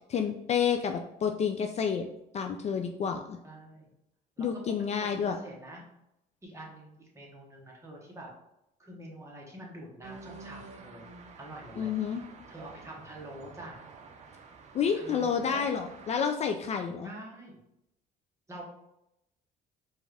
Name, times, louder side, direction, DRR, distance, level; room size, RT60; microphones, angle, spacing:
voice 1, 0.0-2.1 2.3-3.4 4.4-5.4 11.8-12.2 14.7-17.1, left 7 dB, 40° left, 5 dB, 0.4 m, -29 dB
voice 2, 3.4-3.9 4.4-4.5 5.1-5.9 6.4-8.3 8.8-11.1 11.4-12.2 12.5-13.8 14.9-15.7 17.0-17.6 18.5-18.6, right 1 dB, 15° right, -2 dB, 1.3 m, -46 dB
sound 1, 10.0-16.2, right 4 dB, 45° right, 0.6 m, -50 dB
5.1 x 2.5 x 3.3 m, 0.84 s
cardioid pair, 110°, 17 cm